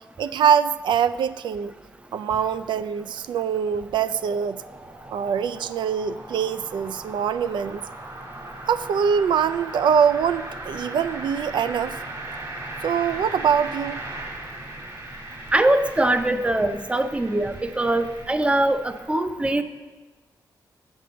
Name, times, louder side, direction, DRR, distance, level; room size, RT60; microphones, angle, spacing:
voice 1, 0.2-1.7 2.1-4.6 5.1-7.8 8.7-12.0 12.8-14.0, right 7 dB, 85° right, 13 dB, 0.4 m, -23 dB
sound 1, 1.7-19.0, right 2 dB, 50° right, 1.7 m, -39 dB
voice 2, 15.5-19.6, right 1 dB, 15° right, 9 dB, 0.5 m, -22 dB
7.7 x 5.4 x 7.4 m, 1.2 s
wide cardioid pair, 135°, 8 cm